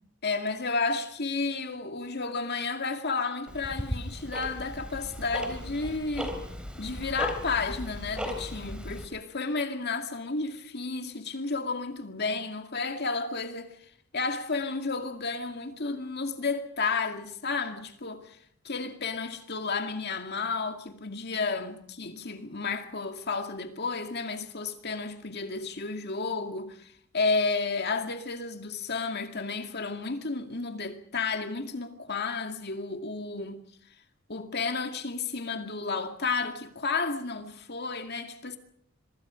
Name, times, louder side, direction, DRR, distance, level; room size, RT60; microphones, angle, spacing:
voice 1, 0.2-6.4 6.8-13.8 14.1-18.4 18.6-33.6 34.3-38.6, left 4 dB, 50° left, 2.2 m, -32 dB
Tick-tock, 3.5-9.0, equal, 5° right, 3.5 m, -37 dB
26.0 x 24.0 x 5.1 m
head